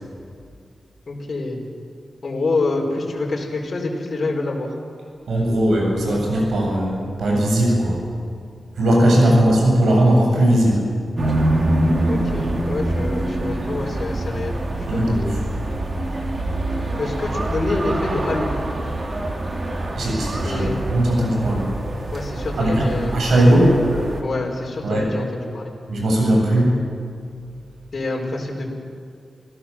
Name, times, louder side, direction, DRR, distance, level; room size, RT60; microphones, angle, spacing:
voice 1, 1.1-1.6 2.2-4.7 9.3-9.6 12.1-14.6 14.9-15.2 17.0-18.5 20.4-20.8 22.1-23.1 24.2-25.7 27.9-28.7, left 2 dB, 55° left, -1 dB, 4.8 m, -26 dB
voice 2, 5.3-7.9 8.8-10.8 14.9-15.4 19.9-21.7 22.6-23.8 24.8-25.0 25.9-26.7, right 1 dB, 85° right, -1 dB, 7.9 m, -18 dB
sound 1, 11.2-24.2, right 1 dB, 45° right, 3.4 m, -25 dB
28.0 x 16.0 x 7.4 m, 2.3 s
cardioid pair, 75°, 0 cm